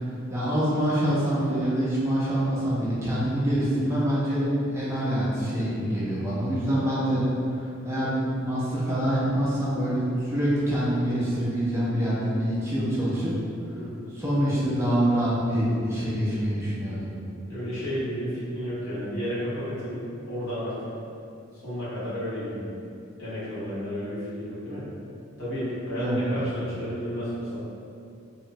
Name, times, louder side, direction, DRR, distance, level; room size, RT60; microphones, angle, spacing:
voice 1, 0.3-4.5 4.7-7.2 7.5-13.3 14.2-17.1 26.0-26.4, equal, 15° right, -9 dB, 0.4 m, -25 dB
voice 2, 17.5-20.9 21.5-22.8 23.2-24.9 25.4-27.6, equal, 70° left, -12 dB, 1.1 m, -32 dB
2.8 x 2.0 x 2.6 m, 2.5 s
head